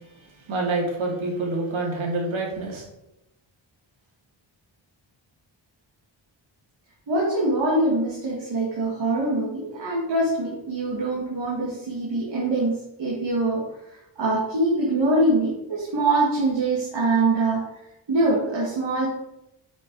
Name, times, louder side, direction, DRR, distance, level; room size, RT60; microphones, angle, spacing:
voice 1, 0.0-2.8, right 2 dB, 85° right, -2 dB, 2.6 m, -27 dB
voice 2, 7.1-13.7 14.2-17.6 18.1-19.1, right 2 dB, 60° right, -4 dB, 2.3 m, -23 dB
9.1 x 5.4 x 4.8 m, 0.87 s
wide cardioid pair, 160°, 46 cm